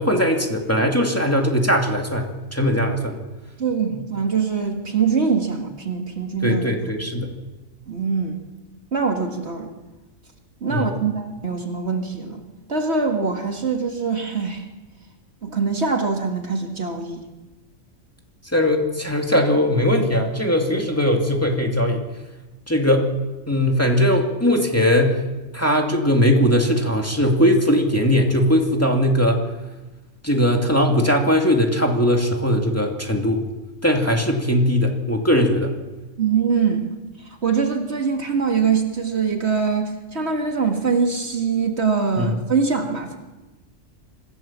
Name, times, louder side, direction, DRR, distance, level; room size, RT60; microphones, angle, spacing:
voice 1, 0.0-3.2 3.9-4.0 6.4-7.3 10.7-10.9 18.5-22.0 22.7-23.1 23.5-25.2 25.5-29.4 30.2-33.4 33.8-35.7 42.2-42.3, equal, 10° left, 1 dB, 2.5 m, -19 dB
voice 2, 3.6-6.7 7.9-8.4 8.9-9.7 10.6-12.4 12.7-14.6 15.4-17.2 36.2-36.8 37.4-43.2, right 5 dB, 55° right, 3 dB, 2.2 m, -23 dB
25.5 x 16.0 x 7.4 m, 1.1 s
omnidirectional pair, 1.4 m